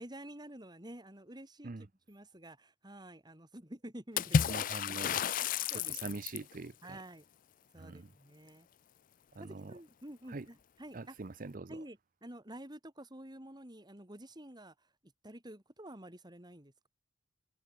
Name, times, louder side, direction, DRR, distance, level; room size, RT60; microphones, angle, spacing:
voice 1, 0.0-4.5 4.9-5.3 5.7-6.2 6.8-7.3 7.7-8.7 9.4-11.1 11.7-16.9, right 1 dB, 20° right, 4.1 m, -50 dB
Water / Splash splatter, 4.2-6.5, left 7 dB, 45° left, 0.4 m, -31 dB
voice 2, 4.5-5.2 5.7-7.0 7.8-8.1 9.3-9.8 10.3-10.5 10.9-11.8, right 3 dB, 45° right, 0.7 m, -44 dB
head